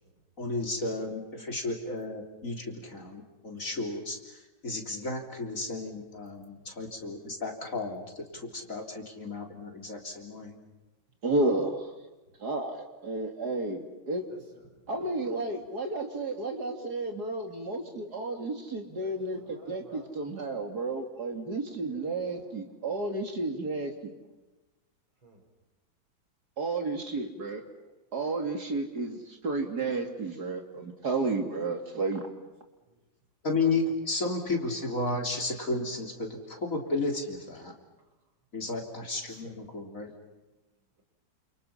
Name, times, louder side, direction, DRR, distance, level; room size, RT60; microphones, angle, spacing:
voice 1, 0.4-10.6 33.4-37.7 38.5-40.1, left 3 dB, 40° left, 2 dB, 3.9 m, -33 dB
voice 2, 6.6-6.9 8.3-8.4 8.8-9.0 9.4-9.5 14.3-15.1 18.9-20.1 21.9-22.1 25.2-25.4 32.9-33.0 39.3-39.6, right 2 dB, 80° right, 3 dB, 6.1 m, -55 dB
voice 3, 11.2-11.9 12.4-14.3 14.9-24.1 26.6-27.6 28.1-32.2, right 2 dB, 50° right, 4 dB, 3.2 m, -32 dB
29.5 x 28.5 x 5.8 m, 1.1 s
omnidirectional pair, 2.2 m